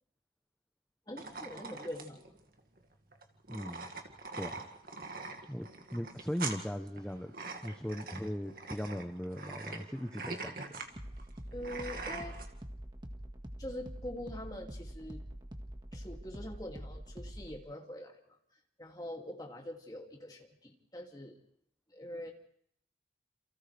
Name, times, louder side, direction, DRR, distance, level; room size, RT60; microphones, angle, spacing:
voice 1, 1.1-2.3 11.5-12.4 13.6-15.2 15.9-18.4 18.8-21.4 21.9-22.3, left 1 dB, 20° left, 1 dB, 2.6 m, -44 dB
sound 1, 1.2-12.5, right 3 dB, 55° right, 2.1 m, -43 dB
voice 2, 3.5-3.9 4.4-4.6 5.0-5.1 5.5-7.3 7.6-10.8, equal, 5° left, 5 dB, 0.9 m, -38 dB
sound 2, 9.0-17.6, equal, 25° right, 1.7 m, -46 dB
29.0 x 28.0 x 3.4 m, 0.68 s
head